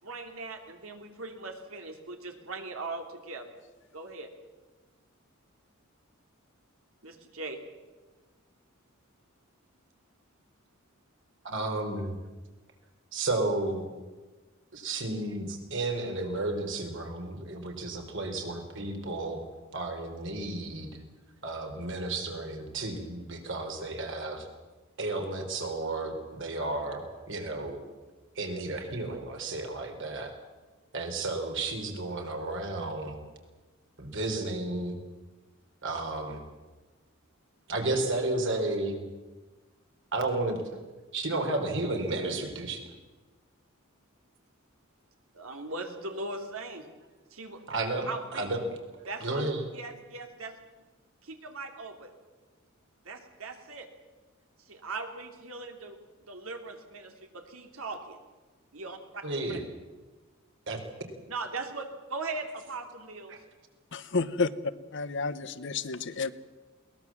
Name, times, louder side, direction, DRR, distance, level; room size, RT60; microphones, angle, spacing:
voice 1, 0.0-3.5 3.9-4.3 7.0-7.6 45.3-46.9 47.3-47.6 48.1-48.5 49.1-49.4 49.7-50.6 51.2-52.1 53.0-53.9 54.6-56.0 56.3-58.2 58.7-59.2 59.5-59.6 61.3-63.3, right 3 dB, 80° right, 5 dB, 2.8 m, -39 dB
voice 2, 11.4-12.2 13.1-13.9 14.7-19.4 19.7-20.9 21.4-24.5 25.0-27.8 28.4-30.3 30.9-33.2 34.0-35.0 35.8-36.4 37.7-39.0 40.1-40.6 41.1-42.8 47.7-48.6 49.2-49.6 59.2-59.6 60.7-60.8, right 2 dB, 65° right, 4 dB, 3.8 m, -32 dB
voice 3, 63.9-64.5 64.9-66.3, left 4 dB, 60° left, 14 dB, 1.0 m, -30 dB
22.0 x 19.0 x 7.3 m, 1.3 s
head